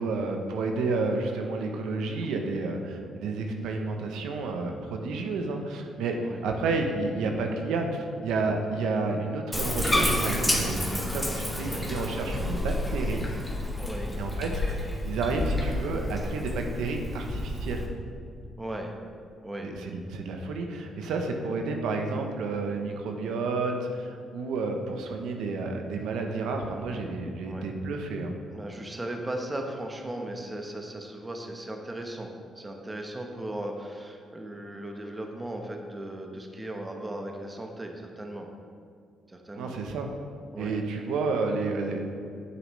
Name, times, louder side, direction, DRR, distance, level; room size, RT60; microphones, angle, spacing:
voice 1, 0.0-13.3 14.2-17.9 19.6-28.3 39.6-40.1 40.6-42.1, right 3 dB, 85° right, 3 dB, 0.8 m, -30 dB
Bathtub (filling or washing), 9.5-17.9, left 1 dB, 5° left, 1.3 m, -30 dB
voice 2, 13.8-14.2 14.7-14.8 18.6-18.9 19.4-19.7 21.0-21.1 27.4-27.7 28.5-38.5 39.3-39.8 40.5-40.8, right 1 dB, 20° right, 2 dB, 1.0 m, -37 dB
9.0 x 6.9 x 3.2 m, 2.3 s
cardioid pair, 90°, 0 cm